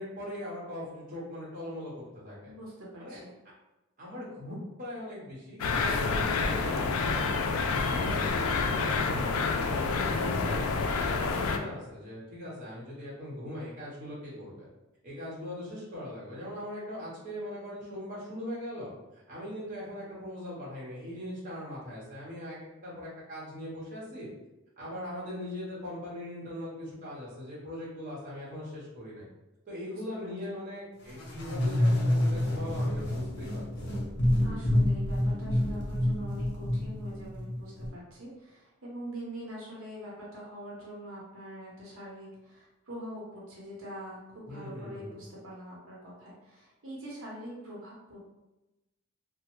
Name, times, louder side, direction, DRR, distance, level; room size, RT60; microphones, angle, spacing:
voice 1, 0.0-2.5 3.0-3.2 4.0-7.3 7.8-9.3 9.7-14.7 15.0-24.3 24.8-29.3 29.7-33.6 33.9-34.0 44.5-45.2, left 1 dB, 40° right, -6 dB, 0.9 m, -40 dB
voice 2, 2.4-3.3 7.9-8.4 29.9-30.0 30.5-30.6 34.4-48.3, equal, 70° right, -4 dB, 0.8 m, -44 dB
sound 1, 5.6-11.6, left 4 dB, 75° left, 0.3 m, -28 dB
sound 2, 31.1-37.9, left 1 dB, 50° left, 0.8 m, -28 dB
3.0 x 2.0 x 3.0 m, 0.99 s
head